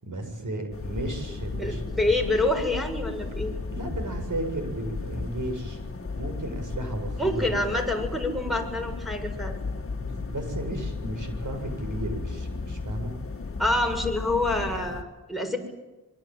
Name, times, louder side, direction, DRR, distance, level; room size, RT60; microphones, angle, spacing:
voice 1, 0.0-2.1 3.7-5.8 6.2-7.6 10.0-13.1, right 1 dB, 60° right, 6 dB, 7.5 m, -34 dB
sound 1, 0.7-15.0, left 3 dB, 40° left, 2.1 m, -34 dB
voice 2, 1.6-3.5 7.2-9.6 13.6-15.6, left 2 dB, ahead, 1 dB, 7.3 m, -27 dB
26.0 x 24.5 x 9.3 m, 1.1 s
wide cardioid pair, 95°, 35 cm